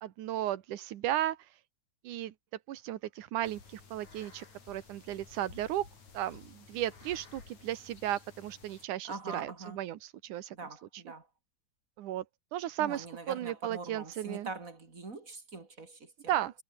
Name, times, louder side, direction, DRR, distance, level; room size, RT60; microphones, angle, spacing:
voice 1, 0.0-1.6 2.0-2.3 2.7-5.9 6.1-10.6 10.9-11.0 12.0-12.2 12.5-14.5 16.3-16.5, right 13 dB, 85° right, 2.7 m, -35 dB
sound 1, 3.4-8.9, left 5 dB, 65° left, 6.1 m, -54 dB
voice 2, 9.1-9.8 10.5-11.2 12.8-16.5, right 3 dB, 25° right, 3.4 m, -43 dB
omnidirectional pair, 3.5 m